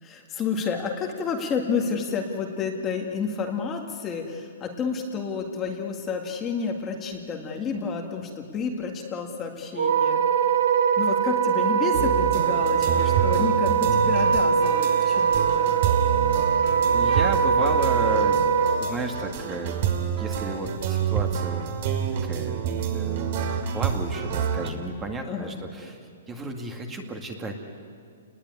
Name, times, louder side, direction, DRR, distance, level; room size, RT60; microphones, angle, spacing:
voice 1, 0.0-10.2 11.0-15.7 25.2-25.6, left 5 dB, 15° left, 2 dB, 1.9 m, -30 dB
Wind instrument woodwind instrument, 9.8-18.8, right 7 dB, 75° right, 2.7 m, -22 dB
sound 1, 11.9-24.7, right 7 dB, 40° right, 2.8 m, -28 dB
voice 2, 16.9-18.4 18.8-19.8 20.2-21.7 22.2-22.6 22.9-23.4 23.7-27.6, right 2 dB, 10° right, 4 dB, 2.1 m, -33 dB
29.5 x 20.5 x 9.8 m, 2.3 s
hypercardioid pair, 165°, 0 cm